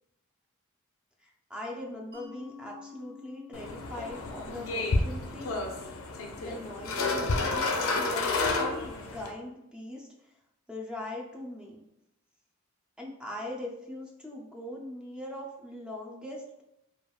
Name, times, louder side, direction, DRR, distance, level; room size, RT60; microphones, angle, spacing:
voice 1, 1.2-5.7 6.4-10.1 10.7-11.8 13.0-16.6, left 1 dB, 5° right, -1 dB, 0.4 m, -41 dB
Mallet percussion, 2.1-7.5, left 7 dB, 55° right, 0.8 m, -52 dB
sound 1, 3.5-9.3, left 3 dB, 70° left, 0.4 m, -30 dB
3.3 x 2.3 x 2.3 m, 0.85 s
head